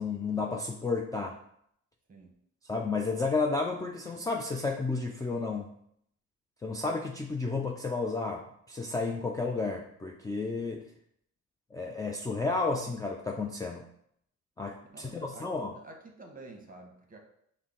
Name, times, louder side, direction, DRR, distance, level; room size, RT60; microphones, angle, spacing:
voice 1, 0.0-1.4 2.7-5.7 6.6-10.8 11.7-13.9 14.6-15.7, left 3 dB, 10° left, 0 dB, 0.3 m, -32 dB
voice 2, 14.9-17.2, right 2 dB, 30° right, 3 dB, 0.9 m, -49 dB
5.5 x 2.2 x 3.7 m, 0.71 s
cardioid pair, 90°, 30 cm